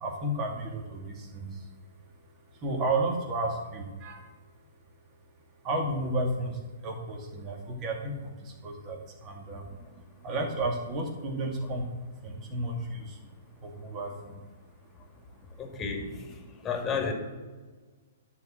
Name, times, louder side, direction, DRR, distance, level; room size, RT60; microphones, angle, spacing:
voice 1, 0.0-1.0 1.3-1.5 2.6-4.1 5.6-6.5 6.8-9.6 10.2-11.9 12.2-13.1 13.6-14.3, right 2 dB, 30° right, 1 dB, 2.2 m, -32 dB
voice 2, 15.6-17.1, left 5 dB, 20° left, 4 dB, 2.1 m, -33 dB
11.0 x 4.7 x 7.6 m, 1.3 s
figure-of-eight pair, 120°, 0 cm